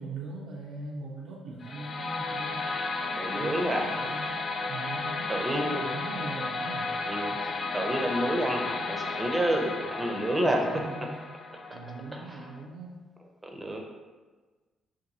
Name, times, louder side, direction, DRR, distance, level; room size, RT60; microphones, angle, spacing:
voice 1, 0.0-2.7 3.4-4.4 4.7-6.9 7.3-7.4 10.4-11.2 11.7-13.0, right 3 dB, 90° right, -4 dB, 0.4 m, -41 dB
sound 1, 1.6-12.6, left 3 dB, 45° left, 0.3 m, -33 dB
voice 2, 3.1-3.9 5.3-5.9 7.1-10.7 11.7-11.8 12.1-12.4 13.5-13.8, right 1 dB, 15° right, 1 dB, 0.6 m, -29 dB
2.6 x 2.6 x 4.0 m, 1.3 s
cardioid pair, 90°, 0 cm